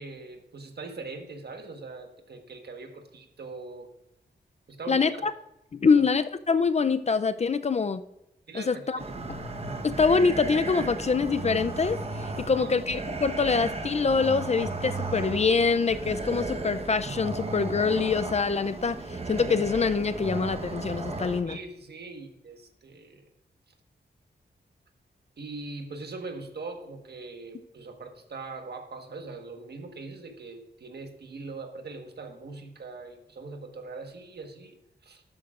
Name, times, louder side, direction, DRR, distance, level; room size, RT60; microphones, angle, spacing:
voice 1, 0.0-3.9 4.7-5.3 5.8-6.1 8.5-9.1 12.4-12.8 21.4-23.3 25.4-35.2, right 3 dB, 65° right, 5 dB, 1.4 m, -41 dB
voice 2, 4.9-5.3 5.7-8.0 8.5-9.0 9.8-21.6, left 5 dB, 35° left, 11 dB, 0.4 m, -25 dB
sound 1, 9.0-21.4, right 2 dB, 35° right, 1.1 m, -35 dB
12.5 x 11.5 x 2.5 m, 0.91 s
wide cardioid pair, 130°, 18 cm